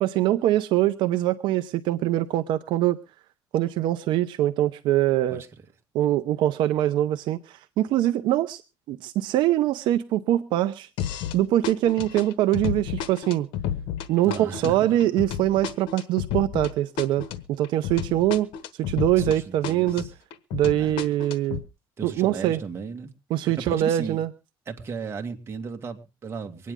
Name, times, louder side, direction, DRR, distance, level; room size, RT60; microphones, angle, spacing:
voice 1, 0.0-3.0 3.5-5.4 5.9-8.6 8.9-10.9 11.3-13.5 14.1-18.5 18.8-20.1 20.5-21.6 22.0-22.6 23.3-24.3, right 13 dB, 75° right, 0.8 m, -23 dB
sound 1, 11.0-11.4 11.6-19.4 19.6-21.6, left 9 dB, 85° left, 1.2 m, -32 dB
voice 2, 14.2-14.8 19.2-20.1 20.8-20.9 22.0-23.1 23.4-24.2 24.7-26.7, right 5 dB, 30° right, 1.9 m, -35 dB
24.0 x 9.6 x 3.7 m
cardioid pair, 130°, 8 cm